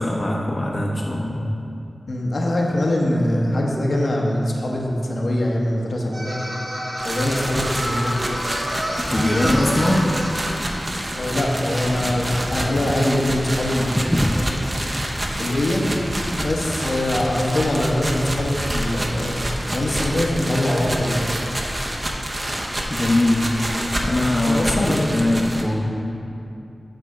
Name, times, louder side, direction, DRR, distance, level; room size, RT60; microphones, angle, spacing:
voice 1, 0.0-1.4 9.1-10.1 22.9-23.6 24.0-25.9, left 1 dB, 40° left, -2 dB, 0.7 m, -21 dB
voice 2, 2.1-6.4 7.0-8.2 11.1-14.7 15.4-15.8 16.4-21.3 24.3-25.4, left 1 dB, 75° left, -2 dB, 1.0 m, -23 dB
sound 1, 6.1-10.5, equal, 60° right, 1.8 m, -29 dB
sound 2, 7.0-25.6, right 1 dB, 35° right, 0.8 m, -28 dB
Wind / Boat Water vehicle, 9.0-17.6, equal, 5° left, 0.4 m, -31 dB
8.9 x 3.4 x 6.0 m, 2.7 s
wide cardioid pair, 75°, 0 cm